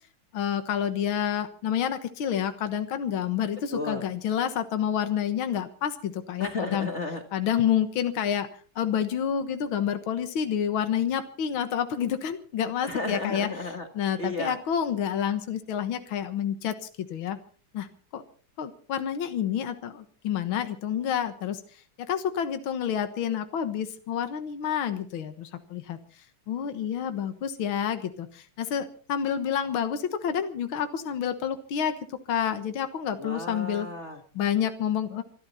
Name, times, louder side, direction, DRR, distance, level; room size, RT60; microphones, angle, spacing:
voice 1, 0.3-6.9 7.3-13.5 14.0-17.4 17.7-17.9 18.1-18.2 18.6-33.9 34.4-35.2, left 9 dB, 70° left, 8 dB, 2.1 m, -29 dB
voice 2, 3.7-4.0 6.4-7.2 12.8-13.9 14.2-14.6 33.2-34.2, left 3 dB, 35° left, 5 dB, 1.9 m, -33 dB
25.5 x 13.0 x 4.3 m, 0.43 s
omnidirectional pair, 2.3 m